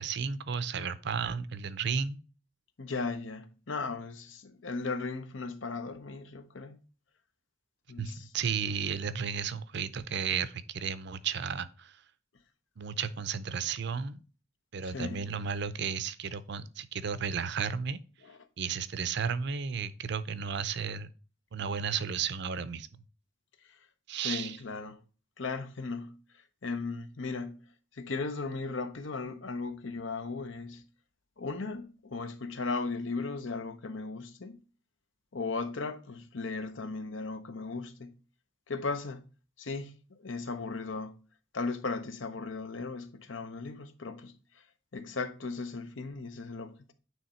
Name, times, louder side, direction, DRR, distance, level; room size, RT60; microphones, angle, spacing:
voice 1, 0.0-2.2 8.0-12.0 12.8-14.2 14.7-18.0 18.6-21.1 21.5-22.9 24.1-24.6, right 6 dB, 65° right, 0.5 m, -33 dB
voice 2, 2.8-6.8 7.9-8.3 14.8-15.2 18.3-18.4 23.7-23.8 24.2-25.0 25.4-26.2 26.6-27.7 27.9-30.9 31.4-34.6 35.3-38.1 38.7-39.2 39.6-41.2 41.5-44.6 44.9-46.9, left 3 dB, 80° left, 0.8 m, -37 dB
9.2 x 3.2 x 4.3 m
head